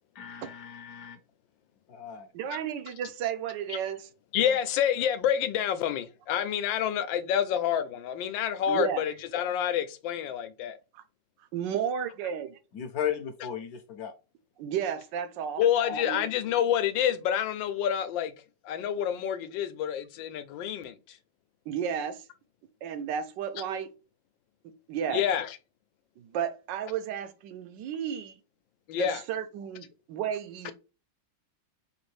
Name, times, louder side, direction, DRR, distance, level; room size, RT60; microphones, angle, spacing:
voice 1, 0.1-1.2 1.9-2.3 4.4-4.6 12.7-14.1, left 9 dB, 65° left, 0.9 m, -36 dB
voice 2, 2.3-4.1 8.3-9.2 11.5-12.5 14.6-15.6 15.9-16.2 21.7-22.2 22.8-23.9 24.9-25.2 26.2-28.3 28.9-30.7, right 8 dB, 75° right, 1.3 m, -33 dB
voice 3, 4.3-10.8 15.6-18.3 18.7-20.9 25.1-25.4 28.9-29.2, left 9 dB, 85° left, 1.3 m, -28 dB
5.2 x 2.6 x 3.2 m
omnidirectional pair, 2.0 m